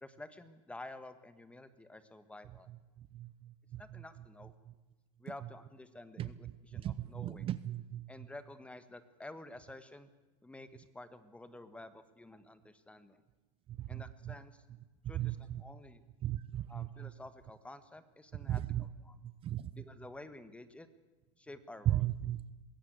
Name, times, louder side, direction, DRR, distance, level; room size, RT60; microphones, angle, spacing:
voice 1, 0.0-2.7 3.8-4.5 5.2-7.5 8.1-10.1 10.4-13.2 13.9-14.6 15.1-16.0 16.7-19.2 19.7-20.9 21.4-22.1, left 2 dB, 5° left, 12 dB, 1.6 m, -51 dB
voice 2, 6.8-8.0 13.9-14.0 15.2-15.4 16.2-17.1 18.5-18.8 19.4-19.6 21.9-22.5, right 13 dB, 35° right, 15 dB, 0.8 m, -35 dB
21.5 x 17.5 x 8.2 m, 1.1 s
supercardioid pair, 120°, 16 cm